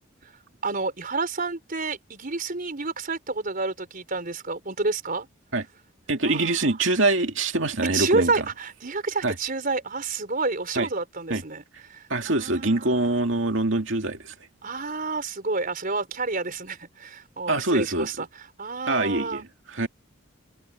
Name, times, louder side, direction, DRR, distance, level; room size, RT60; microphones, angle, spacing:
voice 1, 0.6-5.3 6.2-6.8 7.9-13.2 14.6-18.3 18.6-19.4, right 3 dB, 45° right, 4.8 m, -29 dB
voice 2, 6.1-8.4 9.2-9.3 10.8-10.9 11.3-11.4 12.1-14.3 17.5-18.2 18.9-19.9, right 2 dB, 65° right, 2.6 m, -24 dB
head